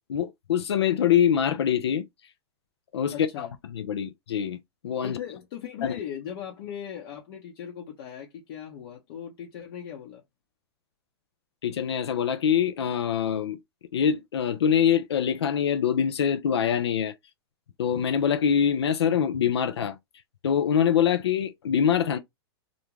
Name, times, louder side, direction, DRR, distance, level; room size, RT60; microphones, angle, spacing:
voice 1, 0.0-2.1 2.9-4.6 4.8-5.2 5.8-5.9 11.6-13.6 13.9-17.1 17.8-20.0 20.4-22.2, left 8 dB, 90° left, 0.5 m, -24 dB
voice 2, 3.1-3.5 5.0-10.2, left 9 dB, 60° left, 0.8 m, -38 dB
2.5 x 2.1 x 3.0 m
hypercardioid pair, 125°, 13 cm